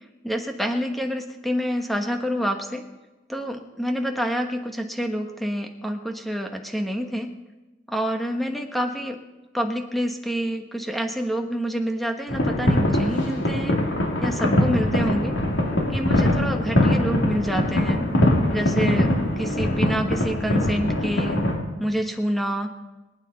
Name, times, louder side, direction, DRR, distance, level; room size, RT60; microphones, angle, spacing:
voice 1, 0.2-2.9 3.3-7.3 7.9-9.2 9.5-15.3 15.9-18.1 18.5-21.4 21.8-22.7, equal, ahead, 4 dB, 1.2 m, -27 dB
sound 1, 12.3-21.6, left 1 dB, 80° left, 2.6 m, -22 dB
23.0 x 9.2 x 4.1 m, 1.1 s
head